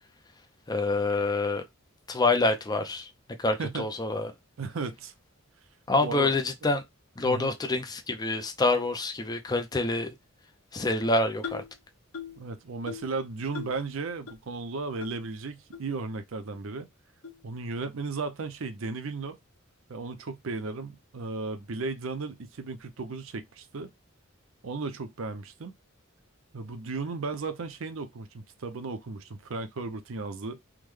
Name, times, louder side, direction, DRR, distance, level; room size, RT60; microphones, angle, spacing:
voice 1, 0.7-1.6 2.1-3.1 3.4-4.3 5.9-6.8 7.2-10.1 10.7-11.6, left 2 dB, 20° left, 0.4 m, -26 dB
voice 2, 4.6-5.1 6.0-6.3 6.6-6.8 7.2-7.5 12.4-16.9 17.4-19.4 19.9-23.9 24.6-25.8 26.5-30.6, right 4 dB, 65° right, 0.5 m, -35 dB
sound 1, 11.4-11.7 12.1-12.4 12.9-13.1 13.5-13.8 14.3-14.4 15.0-15.1 15.7-15.8 16.5-16.6 17.2-17.4, left 6 dB, 85° left, 0.9 m, -39 dB
3.6 x 2.1 x 3.1 m
head